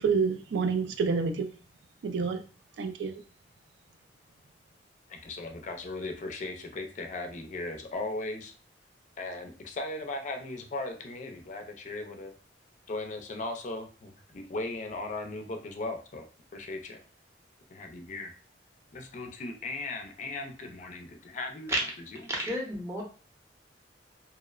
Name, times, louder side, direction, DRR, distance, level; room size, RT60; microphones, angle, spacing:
voice 1, 0.0-1.5 2.0-2.4 2.8-3.2, right 5 dB, 70° right, 7 dB, 0.3 m, -28 dB
voice 2, 5.1-8.5 9.2-12.3 12.9-16.3 16.5-17.0 17.7-18.3 18.9-22.5, left 2 dB, 45° left, 5 dB, 0.4 m, -37 dB
voice 3, 22.3-23.0, right 1 dB, 15° right, -2 dB, 0.6 m, -30 dB
2.7 x 2.0 x 2.3 m, 0.36 s
head